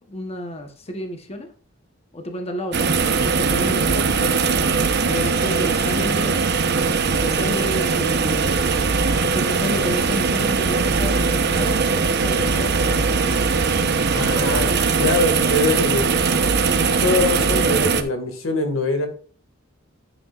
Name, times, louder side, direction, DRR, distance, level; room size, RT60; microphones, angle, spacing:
voice 1, 0.1-1.5 2.1-4.4 5.0-6.4 6.9-8.7 9.2-13.4, left 1 dB, 30° left, 4 dB, 1.0 m, -31 dB
sound 1, 2.7-18.0, right 4 dB, 55° right, 0.9 m, -20 dB
voice 2, 14.1-16.1 17.0-19.1, left 2 dB, 80° left, 6 dB, 1.9 m, -23 dB
10.5 x 9.4 x 2.4 m, 0.42 s
head